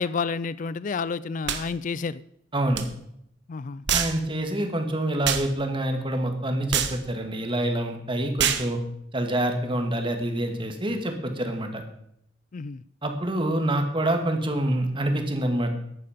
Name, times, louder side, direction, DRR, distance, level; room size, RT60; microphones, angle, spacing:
voice 1, 0.0-2.2 3.5-3.8 12.5-12.8, left 5 dB, 45° left, 17 dB, 0.4 m, -30 dB
sound 1, 1.5-1.6 2.7-2.9 3.9-4.2 5.2-5.5 6.7-7.0 8.4-8.7, right 8 dB, 65° right, 1.4 m, -25 dB
voice 2, 2.5-2.8 3.9-8.8 9.1-11.8 13.0-15.7, right 1 dB, 25° right, 5 dB, 2.1 m, -26 dB
14.5 x 11.0 x 5.2 m, 0.73 s
head